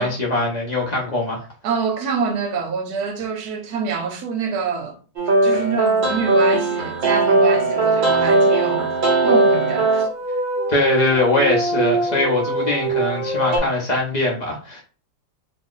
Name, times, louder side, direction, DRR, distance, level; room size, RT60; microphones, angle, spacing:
voice 1, 0.0-1.4 10.7-14.8, left 2 dB, 50° left, 0.5 m, -21 dB
voice 2, 1.6-5.0 5.4-8.9 9.2-10.1, right 5 dB, 70° right, 1.1 m, -26 dB
sound 1, 5.2-13.6, right 2 dB, 55° right, 0.5 m, -19 dB
2.8 x 2.5 x 3.7 m
omnidirectional pair, 1.8 m